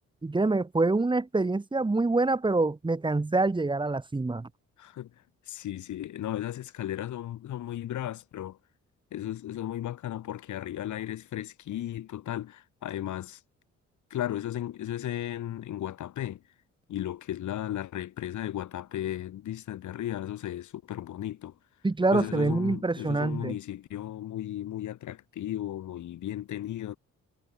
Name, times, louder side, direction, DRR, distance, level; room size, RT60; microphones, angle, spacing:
voice 1, 0.2-4.5 21.8-23.5, right 3 dB, 15° right, 1.5 m, -26 dB
voice 2, 4.8-5.1 5.5-8.6 9.1-13.4 14.1-16.4 16.9-21.6 22.1-27.0, left 12 dB, 75° left, 3.4 m, -35 dB
cardioid pair, 90°, 30 cm